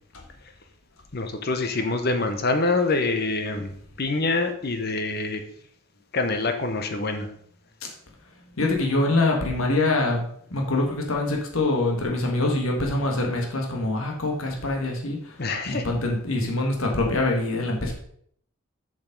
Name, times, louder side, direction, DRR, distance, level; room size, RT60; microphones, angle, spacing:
voice 1, 1.1-5.4 6.1-7.3 15.4-15.8, left 3 dB, 45° left, 7 dB, 0.8 m, -25 dB
voice 2, 8.6-15.3 15.7-17.9, left 2 dB, 75° left, 1 dB, 1.5 m, -24 dB
7.1 x 5.2 x 5.2 m, 0.65 s
head